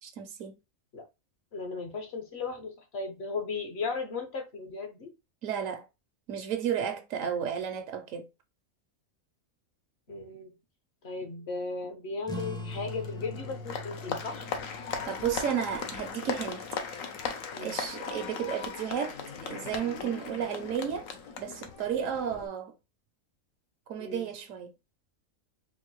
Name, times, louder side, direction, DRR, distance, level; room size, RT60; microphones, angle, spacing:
voice 1, 0.0-0.6 5.4-5.9 6.3-8.3 15.1-16.6 17.6-19.2 19.4-21.1 21.4-22.7 23.9-24.7, right 8 dB, 75° right, 1.0 m, -33 dB
voice 2, 1.5-5.1 10.1-10.5 11.0-14.5 17.5-17.8 24.0-24.3, left 4 dB, 55° left, 1.1 m, -36 dB
sound 1, 12.2-17.3, left 1 dB, 5° left, 0.4 m, -43 dB
Applause, 12.4-22.5, left 6 dB, 75° left, 1.1 m, -38 dB
4.5 x 2.5 x 3.0 m
omnidirectional pair, 1.4 m